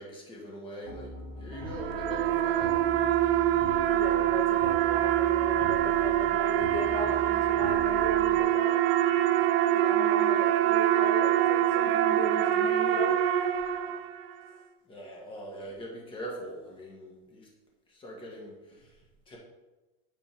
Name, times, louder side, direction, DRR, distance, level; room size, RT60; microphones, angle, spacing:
voice 1, 0.0-2.8 3.8-3.9 14.8-17.5 17.9-19.4, equal, 15° left, -1 dB, 1.5 m, -43 dB
sound 1, 0.8-8.4, left 2 dB, 60° left, 2.2 m, -42 dB
sound 2, 1.6-14.3, right 12 dB, 75° right, 0.6 m, -25 dB
voice 2, 3.9-8.8 9.6-13.2, left 3 dB, 80° left, 4 dB, 1.2 m, -37 dB
8.7 x 4.2 x 3.6 m, 1.1 s
supercardioid pair, 150°, 30 cm